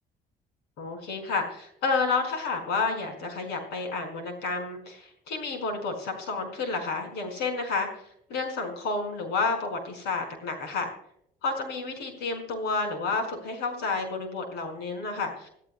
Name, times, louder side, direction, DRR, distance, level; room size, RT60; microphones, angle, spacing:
voice 1, 0.8-7.9 8.3-10.9 11.4-15.5, left 4 dB, 85° left, 5 dB, 4.9 m, -30 dB
27.0 x 13.5 x 2.2 m, 0.72 s
cardioid pair, 110°, 17 cm